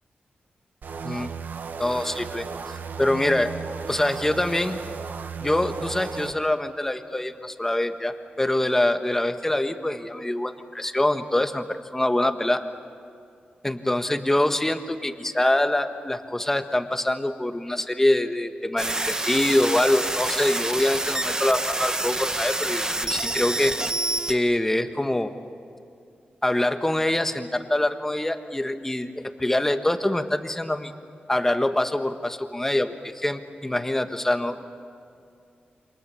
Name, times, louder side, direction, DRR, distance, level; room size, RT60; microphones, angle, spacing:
sound 1, 0.8-6.3, right 6 dB, 70° right, 1.2 m, -35 dB
voice 1, 1.8-3.5 3.9-4.8 5.4-12.6 13.6-23.8 24.3-25.3 26.4-30.9 31.3-34.6, left 1 dB, 10° left, 7 dB, 1.4 m, -24 dB
sound 2, 18.8-24.3, right 2 dB, 20° right, 1.1 m, -27 dB
29.0 x 26.5 x 7.0 m, 2.4 s
wide cardioid pair, 130°, 3 cm